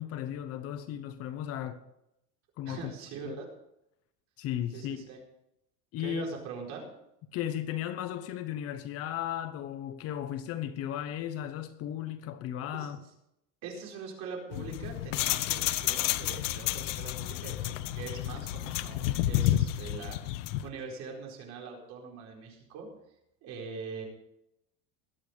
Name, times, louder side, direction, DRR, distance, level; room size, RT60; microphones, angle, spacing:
voice 1, 0.0-1.8 2.6-2.9 3.2-3.4 4.4-5.0 5.9-6.3 7.3-13.0, left 11 dB, 40° left, 1.0 m, -35 dB
voice 2, 2.7-3.5 4.7-5.2 6.0-6.9 12.7-12.9 13.6-22.9 23.4-24.1, right 5 dB, 45° right, 4.5 m, -42 dB
sound 1, 14.5-20.7, left 14 dB, 85° left, 1.0 m, -30 dB
21.5 x 8.3 x 5.0 m
cardioid pair, 165°, 36 cm